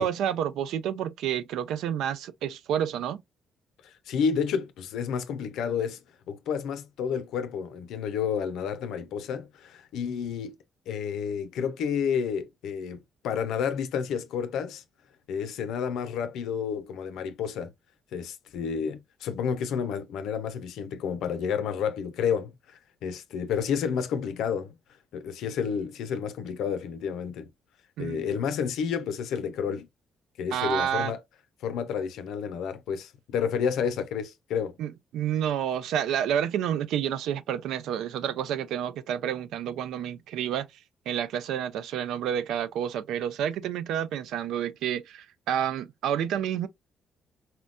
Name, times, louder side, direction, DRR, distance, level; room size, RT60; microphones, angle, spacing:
voice 1, 0.0-3.2 28.0-28.4 30.5-31.1 34.8-40.7 41.1-46.7, right 9 dB, 85° right, 0.4 m, -29 dB
voice 2, 3.8-6.0 6.3-10.5 10.9-14.8 15.3-17.7 18.1-24.8 25.1-27.5 28.0-29.9 30.4-31.2 31.6-34.8, left 7 dB, 85° left, 0.5 m, -30 dB
4.3 x 2.1 x 2.4 m
cardioid pair, 90°, 0 cm